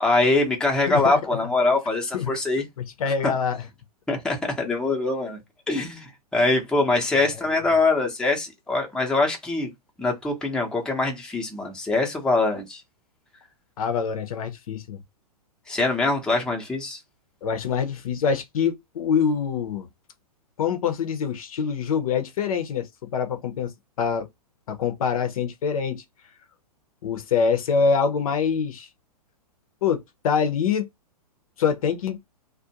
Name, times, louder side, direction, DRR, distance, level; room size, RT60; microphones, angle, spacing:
voice 1, 0.0-2.6 3.2-3.3 4.1-5.4 5.7-9.7 10.0-12.8 15.7-17.0, left 3 dB, 5° left, 0.6 m, -23 dB
voice 2, 0.9-1.4 2.1-2.3 2.8-3.6 7.1-7.2 7.5-7.6 13.8-15.0 17.4-19.9 20.6-22.9 23.1-23.7 24.0-24.3 24.7-26.0 27.0-28.9 29.8-30.9 31.6-32.2, left 6 dB, 60° left, 0.6 m, -25 dB
2.4 x 2.1 x 2.8 m
hypercardioid pair, 120°, 20 cm